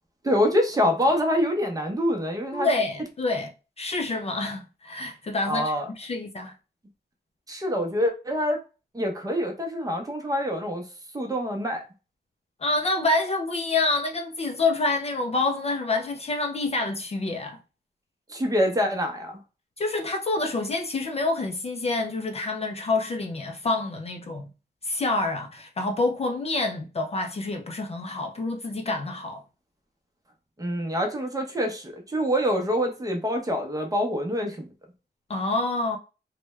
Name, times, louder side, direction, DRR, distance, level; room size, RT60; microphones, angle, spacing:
voice 1, 0.2-2.7 5.5-5.9 7.5-8.6 8.9-10.8 11.1-11.8 18.3-19.4 30.6-34.7, equal, 20° right, 0.7 m, -25 dB
voice 2, 2.5-3.5 3.8-6.5 12.6-17.6 19.8-24.5 24.8-29.4 35.3-36.0, left 2 dB, 35° left, 0.4 m, -27 dB
3.2 x 2.2 x 3.1 m
wide cardioid pair, 155°, 18 cm